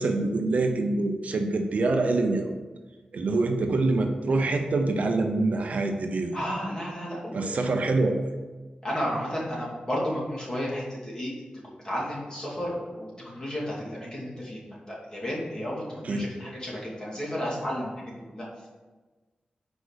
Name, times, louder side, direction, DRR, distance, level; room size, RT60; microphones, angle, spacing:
voice 1, 0.0-2.5 3.1-6.3 7.3-8.2 16.0-16.2, right 2 dB, 65° right, 4 dB, 0.7 m, -25 dB
voice 2, 6.3-7.6 8.8-11.3 11.8-18.5, equal, 30° left, -5 dB, 2.5 m, -32 dB
5.4 x 4.7 x 6.3 m, 1.3 s
wide cardioid pair, 90°, 3 cm